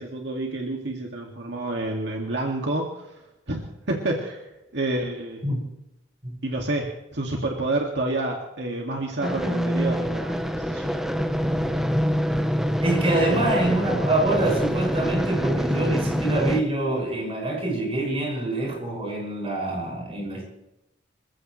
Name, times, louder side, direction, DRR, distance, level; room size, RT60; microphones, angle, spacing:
voice 1, 0.0-4.4 4.7-5.4 6.4-10.9 12.9-13.3, right 2 dB, 65° right, 0 dB, 2.1 m, -29 dB
sound 1, 9.2-16.6, equal, ahead, 0.8 m, -25 dB
voice 2, 12.8-20.5, right 2 dB, 30° right, -1 dB, 6.1 m, -26 dB
27.5 x 15.0 x 3.2 m, 0.91 s
head